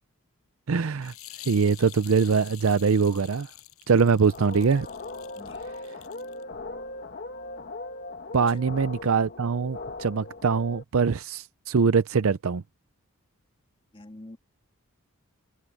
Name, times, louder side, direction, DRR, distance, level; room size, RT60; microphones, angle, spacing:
voice 1, 0.7-1.1 1.5-3.5 3.9-4.9 8.3-12.6, right 5 dB, 70° right, 0.5 m, -23 dB
sound 1, 1.0-6.4, left 15 dB, 85° left, 7.1 m, -47 dB
sound 2, 4.3-10.8, left 2 dB, 50° left, 1.4 m, -39 dB
voice 2, 5.4-5.7 8.4-8.6 13.9-14.4, left 1 dB, 25° left, 2.1 m, -45 dB
head